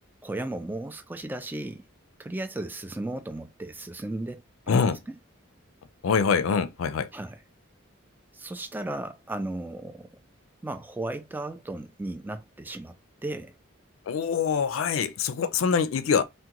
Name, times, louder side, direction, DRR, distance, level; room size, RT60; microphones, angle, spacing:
voice 1, 0.2-1.9 2.2-5.1 7.1-7.4 8.3-10.1 10.6-12.9 13.2-13.5, right 2 dB, 10° right, 0.3 m, -35 dB
voice 2, 4.7-5.0 6.0-7.1 14.1-16.2, left 6 dB, 75° left, 0.4 m, -24 dB
3.6 x 2.2 x 2.9 m
head